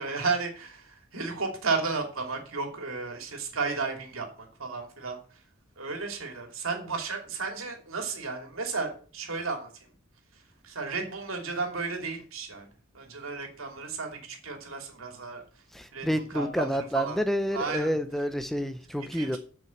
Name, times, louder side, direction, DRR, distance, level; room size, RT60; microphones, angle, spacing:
voice 1, 0.0-5.2 5.8-9.7 10.6-12.7 12.9-15.4 15.9-17.2 17.5-17.9 19.1-19.4, right 4 dB, 90° right, 4 dB, 2.9 m, -33 dB
voice 2, 15.7-19.4, equal, ahead, 9 dB, 0.6 m, -29 dB
9.0 x 6.0 x 7.6 m, 0.40 s
head